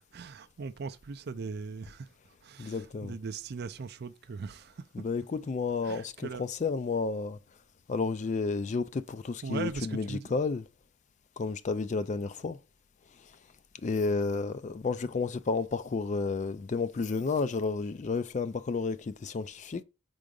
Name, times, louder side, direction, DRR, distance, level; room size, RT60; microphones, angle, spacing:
voice 1, 0.1-2.1 2.4-5.0 5.8-6.5 9.4-10.4, right 5 dB, 50° right, 0.4 m, -39 dB
voice 2, 2.6-3.1 4.9-7.4 7.9-10.6 11.4-12.6 13.2-13.3 13.8-19.8, left 4 dB, 35° left, 0.3 m, -31 dB
4.8 x 3.8 x 5.1 m
head